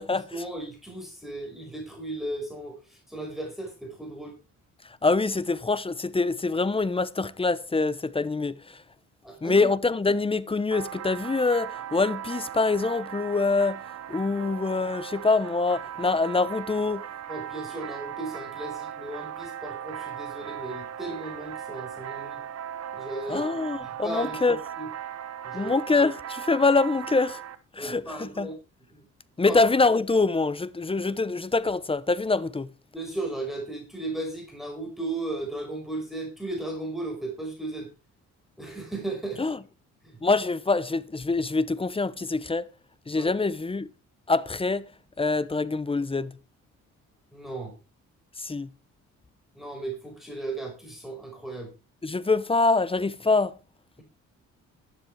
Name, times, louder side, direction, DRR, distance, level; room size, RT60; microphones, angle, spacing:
voice 1, 0.3-4.3 9.2-9.7 17.3-22.4 22.9-23.4 23.8-24.9 25.4-25.7 27.8-28.5 28.9-29.0 29.5-29.6 32.9-37.9 38.6-39.4 40.0-40.2 43.1-43.3 47.3-47.8 49.5-51.7, right 2 dB, ahead, 5.3 m, -35 dB
voice 2, 5.0-8.8 9.4-13.8 14.1-17.0 23.3-24.6 25.5-27.4 27.7-28.5 29.4-32.7 39.4-39.6 40.2-42.7 43.1-43.9 44.3-44.9 45.2-46.3 48.4-48.7 52.0-53.5, left 3 dB, 20° left, 0.9 m, -25 dB
sound 1, 10.7-27.6, right 10 dB, 55° right, 1.7 m, -38 dB
12.0 x 10.5 x 4.7 m
cardioid pair, 90°, 30 cm